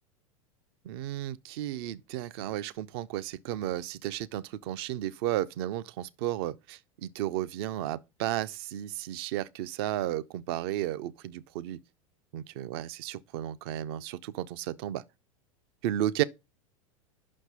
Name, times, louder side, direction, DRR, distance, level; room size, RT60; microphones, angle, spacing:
voice 1, 0.8-11.8 12.3-15.0 15.8-16.2, right 13 dB, 45° right, 0.5 m, -33 dB
5.9 x 5.2 x 5.5 m
figure-of-eight pair, 85°, 17 cm